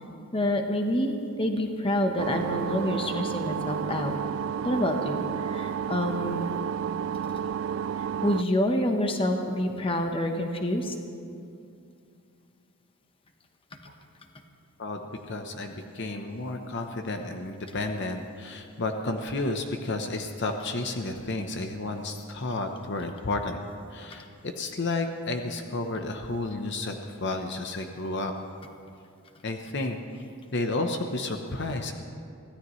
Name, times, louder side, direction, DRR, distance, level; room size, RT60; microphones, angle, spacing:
voice 1, 0.3-4.2 4.6-6.6 8.2-10.9, left 1 dB, 25° left, 4 dB, 1.0 m, -27 dB
sound 1, 2.2-8.4, right 8 dB, 60° right, 0.3 m, -31 dB
voice 2, 14.8-23.6 23.9-28.3 29.4-30.2 30.5-31.9, left 2 dB, 50° left, 5 dB, 0.9 m, -32 dB
24.0 x 16.5 x 3.2 m, 2.5 s
head